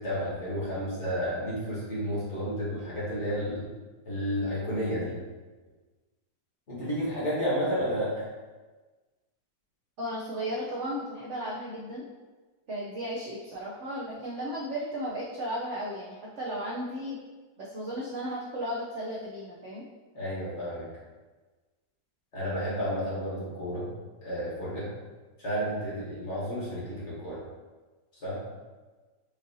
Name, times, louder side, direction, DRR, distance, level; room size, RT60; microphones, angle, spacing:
voice 1, 0.0-3.6 4.0-5.1 6.7-8.3 20.1-20.9 22.3-23.9 24.2-24.9 25.4-27.4 28.2-28.4, equal, 40° left, -8 dB, 1.4 m, -31 dB
voice 2, 10.0-12.1 12.7-17.2 17.6-19.8, equal, 75° right, -5 dB, 0.6 m, -35 dB
5.3 x 2.6 x 2.7 m, 1.3 s
omnidirectional pair, 2.0 m